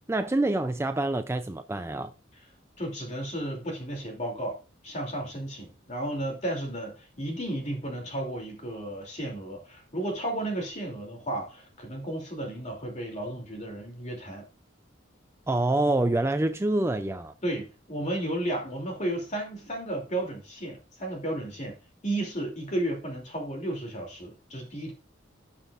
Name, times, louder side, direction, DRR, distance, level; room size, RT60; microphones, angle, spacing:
voice 1, 0.1-2.1 15.5-17.3, right 2 dB, 15° right, 0.4 m, -26 dB
voice 2, 2.8-4.6 4.8-14.5 17.4-21.8 22.0-24.9, right 1 dB, 35° left, 2.8 m, -33 dB
16.0 x 5.9 x 2.5 m
head